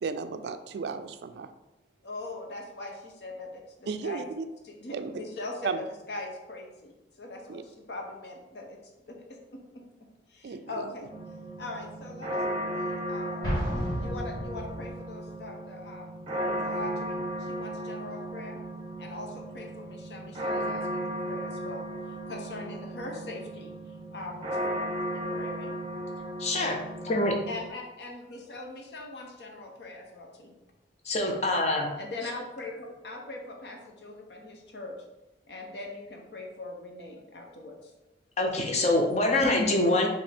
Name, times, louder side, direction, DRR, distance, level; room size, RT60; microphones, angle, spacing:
voice 1, 0.0-1.5 3.9-4.5 4.9-5.3 5.6-5.8 7.5-7.6 10.4-10.9, right 5 dB, 65° right, 10 dB, 0.3 m, -34 dB
voice 2, 2.0-4.3 4.6-5.7 6.1-6.9 7.2-8.8 9.1-9.8 10.3-11.0 11.6-17.2 17.5-18.6 19.0-21.9 22.3-23.7 24.1-25.7 27.5-30.6 32.0-34.9 35.5-37.7, left 2 dB, 65° left, 1 dB, 0.8 m, -41 dB
sound 1, 11.1-27.7, right 1 dB, 30° right, 0.7 m, -35 dB
Explosion, 13.4-15.0, equal, 25° left, 1.6 m, -32 dB
voice 3, 26.4-26.8 27.0-27.3 31.1-31.9 38.4-40.1, left 2 dB, 40° left, 1 dB, 0.7 m, -25 dB
5.2 x 2.8 x 3.4 m, 1.0 s
head